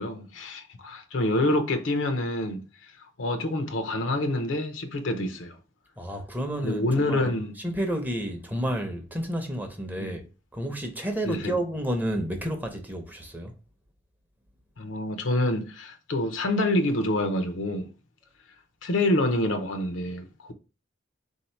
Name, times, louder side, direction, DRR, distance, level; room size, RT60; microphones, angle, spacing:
voice 1, 0.0-2.6 3.2-5.6 6.6-7.5 10.0-10.1 11.3-11.5 14.8-17.9 18.8-20.5, left 1 dB, 80° left, 0.7 m, -27 dB
voice 2, 6.0-10.3 10.5-13.5, right 1 dB, 10° right, 0.6 m, -31 dB
3.9 x 2.7 x 4.3 m
head